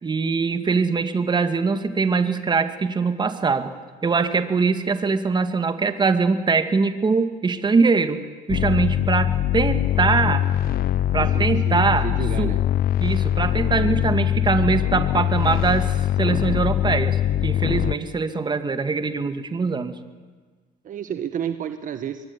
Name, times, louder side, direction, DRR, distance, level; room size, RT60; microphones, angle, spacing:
voice 1, 0.0-3.7 4.0-8.2 8.5-10.4 11.1-12.1 12.4-12.5 13.0-19.9, right 4 dB, 25° right, 9 dB, 2.2 m, -22 dB
sound 1, 8.5-17.9, left 11 dB, 60° left, 0.7 m, -22 dB
voice 2, 11.2-12.6 20.8-22.3, right 9 dB, 50° right, 9 dB, 1.4 m, -31 dB
25.0 x 22.5 x 9.8 m, 1.4 s
cardioid pair, 110°, 17 cm